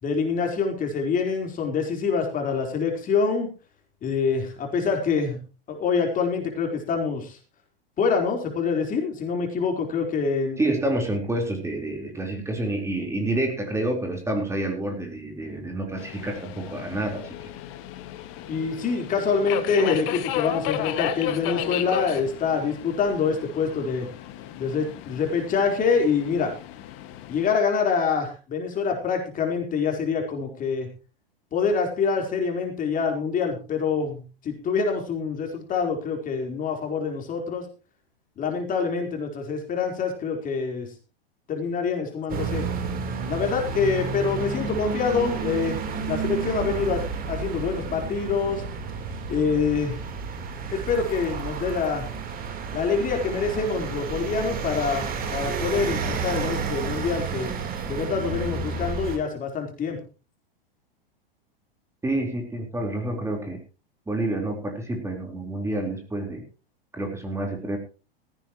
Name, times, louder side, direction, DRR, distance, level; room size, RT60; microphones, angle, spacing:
voice 1, 0.0-3.5 4.0-5.4 5.7-7.4 8.0-10.7 18.5-24.1 24.6-26.5 27.3-30.9 31.5-37.7 38.4-40.9 41.5-42.6 43.3-45.8 46.1-48.6 49.3-50.0 50.7-52.1 52.7-57.5 57.9-60.0, left 5 dB, 25° left, 2 dB, 4.2 m, -26 dB
voice 2, 10.6-17.5 62.0-63.6 64.1-66.4 66.9-67.8, right 1 dB, 10° right, 2 dB, 4.1 m, -28 dB
Subway metro underground, 16.0-27.5, left 12 dB, 45° left, 1.9 m, -34 dB
sound 1, 42.3-59.2, right 5 dB, 30° right, 3.8 m, -31 dB
17.0 x 15.0 x 3.1 m, 0.33 s
hypercardioid pair, 105°, 30 cm